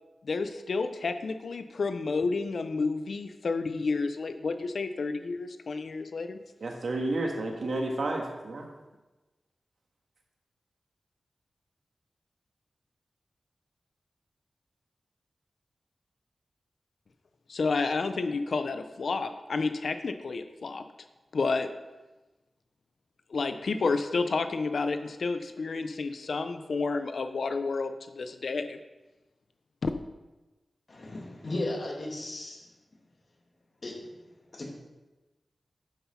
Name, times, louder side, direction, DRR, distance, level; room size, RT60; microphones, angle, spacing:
voice 1, 0.2-6.4 17.5-20.8 21.3-21.7 23.3-28.8 29.8-29.9, left 4 dB, 75° left, 8 dB, 0.6 m, -30 dB
voice 2, 6.6-8.7, right 2 dB, 75° right, 1 dB, 1.7 m, -31 dB
voice 3, 30.9-32.7 33.8-33.9 34.5-34.7, left 2 dB, 50° left, -2 dB, 2.4 m, -35 dB
10.0 x 5.7 x 5.8 m, 1.1 s
wide cardioid pair, 115°, 0 cm